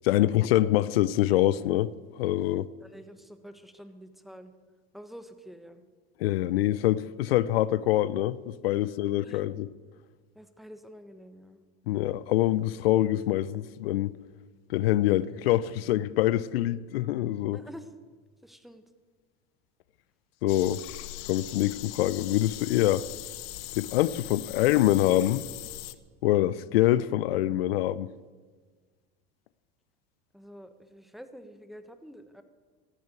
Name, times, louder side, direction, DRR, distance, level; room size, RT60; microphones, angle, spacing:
voice 1, 0.0-2.7 6.2-9.7 11.9-14.2 14.7-17.6 20.4-20.8 21.3-23.0 23.8-25.5 26.2-28.1, left 14 dB, 85° left, 0.6 m, -25 dB
voice 2, 2.8-4.5 4.9-5.8 8.8-8.9 9.2-9.4 10.3-11.6 17.5-17.9 18.4-18.8 30.3-32.4, equal, ahead, 1.3 m, -48 dB
sound 1, 20.5-25.9, left 17 dB, 60° left, 0.9 m, -40 dB
14.0 x 10.0 x 8.3 m
hypercardioid pair, 95°, 29 cm